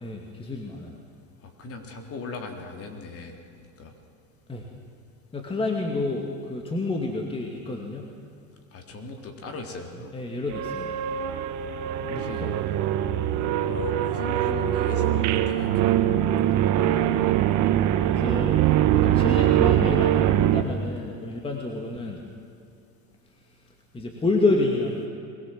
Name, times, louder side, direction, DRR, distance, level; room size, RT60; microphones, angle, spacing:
voice 1, 0.0-1.0 4.5-4.7 5.3-8.1 10.1-10.9 12.1-12.6 16.7-17.3 18.0-18.6 18.9-22.2 23.9-25.1, left 2 dB, 15° left, 1 dB, 2.4 m, -29 dB
voice 2, 1.6-3.9 8.7-10.1 12.0-12.5 13.7-16.0 22.0-22.1, left 3 dB, 35° left, 3 dB, 3.7 m, -38 dB
sound 1, 10.5-20.6, right 12 dB, 45° right, 1.5 m, -22 dB
23.5 x 21.0 x 7.7 m, 2.5 s
supercardioid pair, 130°, 40 cm